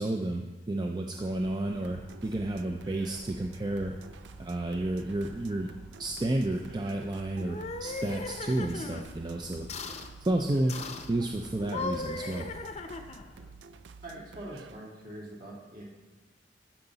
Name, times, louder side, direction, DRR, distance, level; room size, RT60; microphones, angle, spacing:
voice 1, 0.0-4.0 4.4-5.7 6.0-9.7 10.2-10.8 11.1-12.5, right 1 dB, 25° right, 2 dB, 0.5 m, -31 dB
sound 1, 1.1-13.5, equal, 5° left, 0.8 m, -54 dB
sound 2, 1.7-14.8, right 4 dB, 80° right, 0.4 m, -51 dB
sound 3, 7.4-9.1 9.7-10.1 10.7-11.1 11.6-13.3, left 3 dB, 40° left, 0.7 m, -38 dB
voice 2, 14.0-15.8, right 1 dB, 50° right, -4 dB, 2.8 m, -43 dB
13.5 x 5.8 x 4.0 m, 1.3 s
head